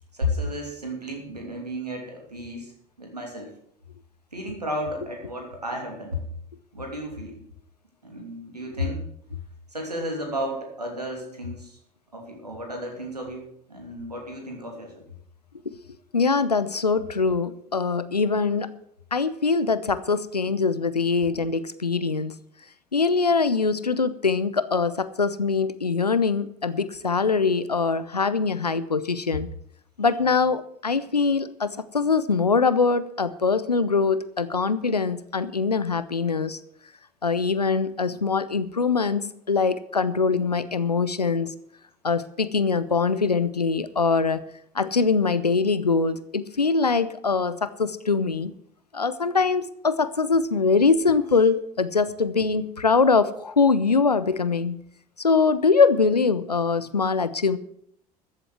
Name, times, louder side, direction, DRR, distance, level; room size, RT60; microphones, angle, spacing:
voice 1, 0.1-2.7 3.0-3.5 4.3-6.2 6.7-7.4 8.0-9.0 9.3-9.4 9.7-11.8 12.1-15.1, left 1 dB, 90° right, 1 dB, 2.9 m, -33 dB
voice 2, 16.1-18.7 19.1-22.3 22.9-29.5 30.0-36.6 37.2-41.5 42.0-44.4 44.7-48.5 48.9-54.8 55.2-57.6, left 4 dB, 90° left, 15 dB, 0.7 m, -23 dB
14.0 x 7.6 x 7.8 m, 0.71 s
figure-of-eight pair, 65°, 20 cm